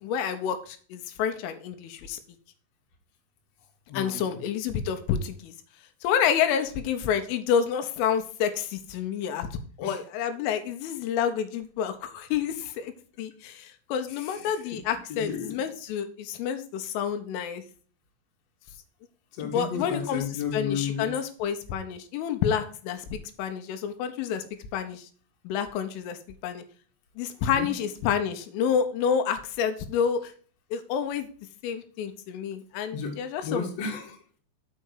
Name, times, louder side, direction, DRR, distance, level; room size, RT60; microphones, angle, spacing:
voice 1, 0.0-2.2 3.9-5.5 6.0-9.5 9.8-12.9 13.2-17.6 19.4-24.4 24.7-25.1 25.4-26.6 27.2-30.3 30.7-31.3 31.6-33.7, left 8 dB, 85° left, 8 dB, 3.3 m, -29 dB
voice 2, 3.9-4.4 9.8-9.9 14.2-14.4 15.1-15.6 19.4-21.1 27.4-27.7 32.9-34.4, left 6 dB, 50° left, 0 dB, 2.2 m, -33 dB
6.4 x 5.7 x 6.5 m, 0.43 s
omnidirectional pair, 5.7 m